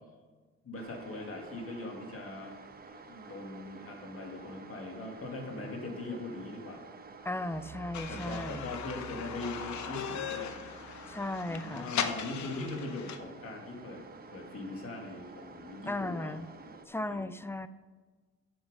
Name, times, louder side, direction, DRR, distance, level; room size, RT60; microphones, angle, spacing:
voice 1, 0.6-2.6 2.9-6.8 8.1-10.6 11.5-14.0 14.3-16.4 16.7-17.3, left 2 dB, 50° left, 1 dB, 2.3 m, -41 dB
sound 1, 0.7-16.8, right 4 dB, 30° right, 0.9 m, -51 dB
voice 2, 7.2-8.7 11.1-11.9 15.9-16.5 16.9-17.7, left 2 dB, 10° left, 13 dB, 0.4 m, -36 dB
sound 2, 7.5-12.8, right 6 dB, 60° right, 1.6 m, -53 dB
sound 3, 7.9-13.2, left 8 dB, 70° left, 0.9 m, -38 dB
7.9 x 7.4 x 5.1 m, 1.4 s
cardioid pair, 90°, 30 cm